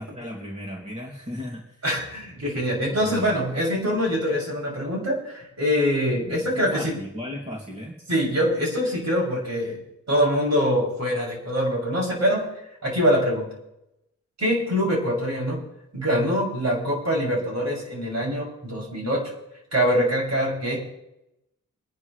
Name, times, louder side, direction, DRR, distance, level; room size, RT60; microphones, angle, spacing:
voice 1, 0.0-1.8 2.9-3.3 6.3-8.0, left 1 dB, 20° right, -1 dB, 2.7 m, -36 dB
voice 2, 1.8-7.0 8.1-9.8 10.1-12.5 12.8-13.5 14.4-15.7 15.9-19.3 19.7-20.9, equal, 50° right, -3 dB, 7.2 m, -24 dB
25.0 x 10.5 x 3.3 m, 0.85 s
cardioid pair, 70°, 34 cm